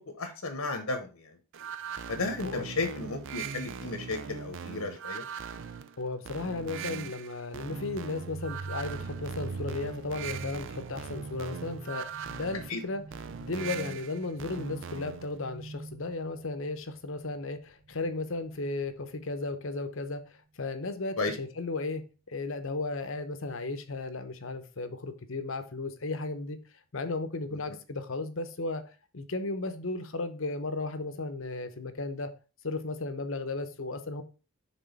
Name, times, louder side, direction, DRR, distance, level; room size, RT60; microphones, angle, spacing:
voice 1, 0.2-1.3 2.1-5.2 12.7-12.8 21.2-21.3, left 3 dB, 80° left, 1.1 m, -33 dB
sound 1, 1.5-15.3, right 6 dB, 55° right, 0.4 m, -40 dB
voice 2, 6.0-13.0 13.4-26.6 26.9-28.8 29.1-32.3 32.6-34.2, left 3 dB, 60° left, 0.9 m, -35 dB
sound 2, 7.7-19.3, right 4 dB, 75° right, 0.8 m, -45 dB
6.2 x 3.8 x 5.3 m
head